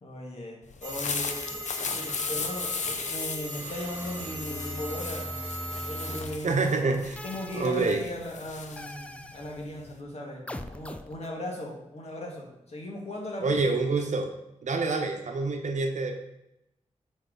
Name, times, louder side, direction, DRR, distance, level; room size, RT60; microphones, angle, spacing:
voice 1, 0.0-6.7 7.2-13.8, left 1 dB, 60° left, -1 dB, 1.8 m, -38 dB
sound 1, 0.7-10.0, left 5 dB, 75° left, 0.6 m, -37 dB
sound 2, 0.8-6.2, right 1 dB, 15° right, 1.5 m, -38 dB
sound 3, 3.8-6.4 7.1-7.9 8.7-9.6 10.5-11.3, left 1 dB, 10° left, 0.4 m, -41 dB
voice 2, 6.4-7.2 7.5-8.0 13.4-14.3 14.6-16.1, right 3 dB, 80° right, 4 dB, 1.0 m, -27 dB
8.4 x 4.6 x 3.9 m, 0.86 s
wide cardioid pair, 120°, 12 cm